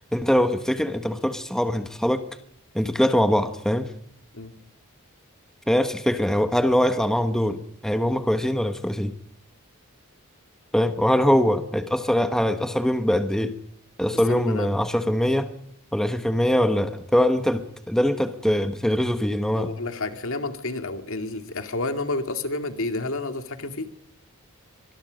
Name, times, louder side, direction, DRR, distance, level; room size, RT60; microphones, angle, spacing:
voice 1, 0.1-2.2 2.7-3.9 5.7-9.1 10.7-13.5 14.0-15.5 15.9-19.7, equal, ahead, 1.2 m, -22 dB
voice 2, 14.3-14.7 15.0-15.2 19.6-23.9, left 2 dB, 65° left, 2.3 m, -30 dB
24.5 x 20.5 x 5.2 m
head